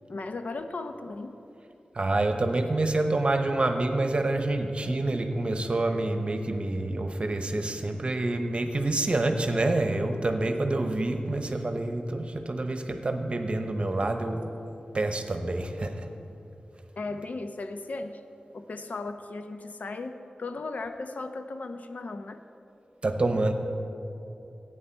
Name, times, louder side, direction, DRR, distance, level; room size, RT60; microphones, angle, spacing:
voice 1, 0.1-1.4 17.0-18.2 18.5-22.4, left 3 dB, 65° left, 7 dB, 0.7 m, -36 dB
voice 2, 1.9-14.5 14.9-16.1 23.0-23.5, right 2 dB, 40° right, 6 dB, 0.9 m, -27 dB
15.5 x 9.1 x 4.5 m, 2.9 s
wide cardioid pair, 110°, 3 cm